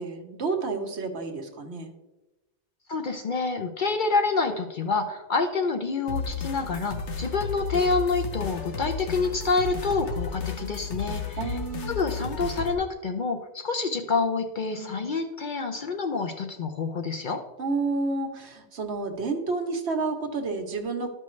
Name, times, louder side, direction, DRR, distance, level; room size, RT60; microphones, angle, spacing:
voice 1, 0.0-1.9 11.4-12.0 14.7-15.1 17.6-21.1, right 3 dB, 65° right, 5 dB, 1.2 m, -30 dB
voice 2, 2.9-11.6 11.9-17.4, left 4 dB, 50° left, 5 dB, 0.7 m, -27 dB
sound 1, 6.1-12.7, left 5 dB, 75° left, 1.2 m, -33 dB
12.5 x 5.5 x 3.1 m, 1.1 s
omnidirectional pair, 1.2 m